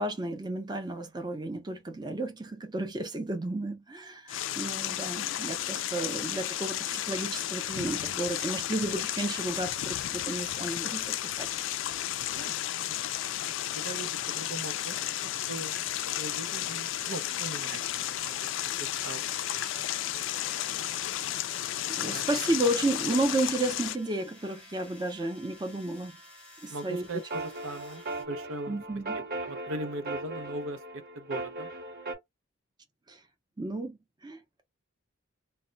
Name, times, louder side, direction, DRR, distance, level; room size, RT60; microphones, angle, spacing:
voice 1, 0.0-11.5 22.0-26.2 26.6-27.1 28.7-29.2 33.1-33.2 33.6-34.6, right 1 dB, 20° right, 0.5 m, -32 dB
sound 1, 4.3-24.0, left 12 dB, 65° left, 0.3 m, -33 dB
voice 2, 4.4-4.8 12.3-12.5 13.7-15.0 15.5-15.8 16.2-20.0 22.1-22.2 26.7-28.8 29.1-31.7, right 1 dB, 90° right, 0.6 m, -40 dB
sound 2, 15.6-28.2, left 1 dB, 5° left, 0.9 m, -52 dB
sound 3, 27.1-32.2, right 2 dB, 50° right, 0.8 m, -38 dB
2.1 x 2.1 x 3.8 m
head